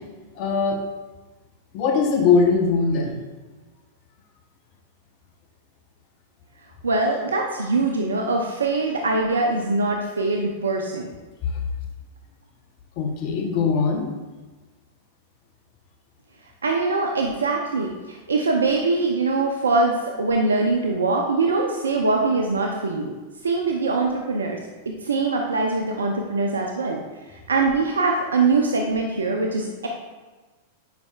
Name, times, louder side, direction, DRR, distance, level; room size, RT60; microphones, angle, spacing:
voice 1, 0.3-0.8 1.7-3.2 11.4-11.6 13.0-14.1, left 5 dB, 50° left, 2 dB, 0.9 m, -21 dB
voice 2, 6.8-11.1 16.6-23.1 23.4-24.6 25.0-27.0 27.5-29.9, right 3 dB, 85° right, 1 dB, 0.6 m, -23 dB
9.4 x 5.5 x 2.4 m, 1.2 s
hypercardioid pair, 100°, 0 cm